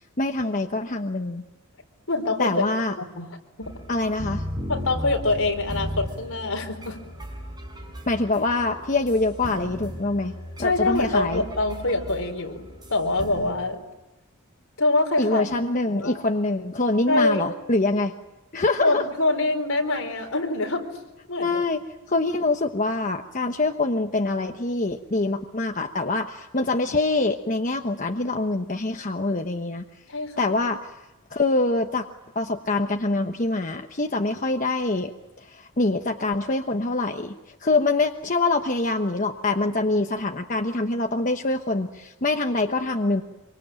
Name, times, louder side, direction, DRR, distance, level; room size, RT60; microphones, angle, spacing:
voice 1, 0.2-1.4 2.4-2.9 3.9-4.4 8.1-11.4 15.2-18.1 18.5-19.0 21.4-21.8 22.1-29.8 30.4-30.9 31.3-32.1 32.3-35.1 35.4-37.4 37.6-43.2, left 2 dB, 35° left, 4 dB, 1.1 m, -25 dB
voice 2, 2.1-2.6 3.0-3.3 3.6-3.7 4.7-7.0 10.6-13.8 14.8-15.4 15.9-16.1 17.1-17.4 18.8-20.9 21.3-21.6 30.1-30.5, left 2 dB, 70° left, 3 dB, 4.5 m, -25 dB
sound 1, 3.6-13.5, equal, 20° right, 6.1 m, -36 dB
26.0 x 24.5 x 9.1 m, 1.0 s
head